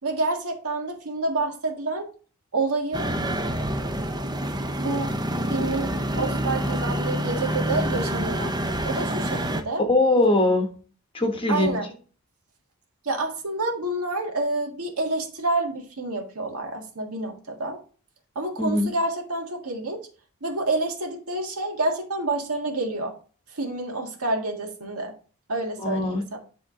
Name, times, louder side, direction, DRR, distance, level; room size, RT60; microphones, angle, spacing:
voice 1, 0.0-2.1 2.5-3.1 4.8-5.1 5.5-5.9 6.2-8.5 8.8-9.8 11.5-11.9 13.0-17.8 18.4-20.0 20.4-23.1 23.5-25.1 25.5-26.4, right 2 dB, 80° right, 1.8 m, -28 dB
sound 1, 2.9-9.6, right 1 dB, 20° right, 0.6 m, -27 dB
voice 2, 9.9-10.8 11.1-11.8 18.6-18.9 25.8-26.2, left 2 dB, 25° left, 1.0 m, -21 dB
10.5 x 3.7 x 3.7 m
head